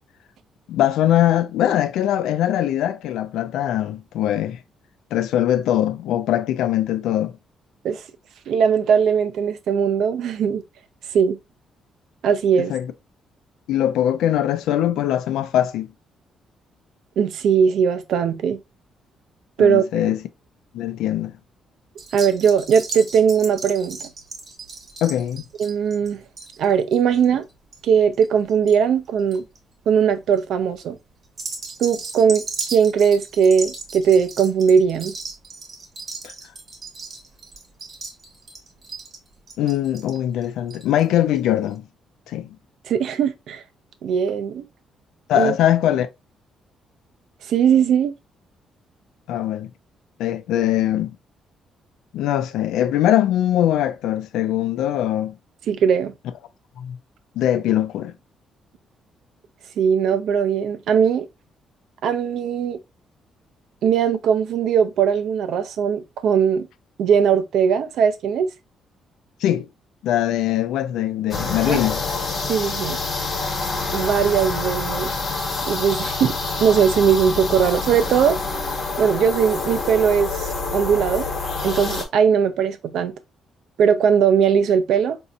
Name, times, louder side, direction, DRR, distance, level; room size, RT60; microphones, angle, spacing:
voice 1, 0.7-4.6 5.1-7.4 12.7-12.9 13.7-15.9 19.6-20.2 20.7-21.4 25.0-25.5 36.2-36.3 39.6-41.8 42.3-42.6 45.3-46.1 49.3-49.7 50.2-51.2 52.1-55.4 56.8-57.0 57.4-58.1 69.4-69.7 70.0-72.0, left 12 dB, 85° left, 0.4 m, -21 dB
voice 2, 8.5-10.6 11.1-11.4 12.2-12.7 17.2-18.6 19.6-20.0 22.1-24.1 25.6-26.2 26.6-27.4 27.8-29.4 29.9-31.0 31.8-35.1 42.9-43.6 44.0-44.7 45.4-45.5 47.5-48.1 55.7-56.1 59.8-61.3 62.0-62.8 63.8-66.7 67.0-68.5 71.6-71.8 72.5-73.0 73.9-75.1 75.7-76.3 76.6-78.4 79.0-81.3 81.6-83.1 83.8-85.2, right 7 dB, 75° right, 0.5 m, -19 dB
sound 1, 22.0-28.8 29.0-29.6 30.1-30.4 31.2-41.0 41.3-41.4 41.7-41.8, right 4 dB, 50° right, 1.0 m, -36 dB
sound 2, 71.3-82.0, left 3 dB, 50° left, 1.1 m, -27 dB
4.1 x 2.7 x 2.4 m
cardioid pair, 90°, 0 cm